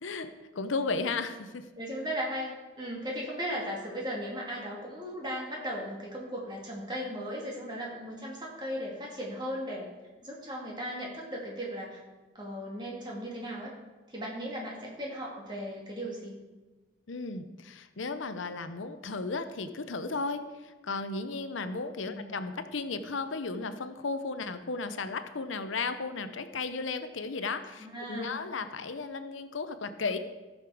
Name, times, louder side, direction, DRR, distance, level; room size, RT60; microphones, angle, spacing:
voice 1, 0.0-1.7 17.1-30.2, left 3 dB, 90° left, 10 dB, 0.8 m, -35 dB
voice 2, 1.8-9.9 10.2-12.0 12.3-13.7 14.1-16.3 22.1-22.3 27.8-28.4, equal, 25° right, -3 dB, 2.4 m, -37 dB
15.0 x 6.6 x 5.0 m, 1.2 s
head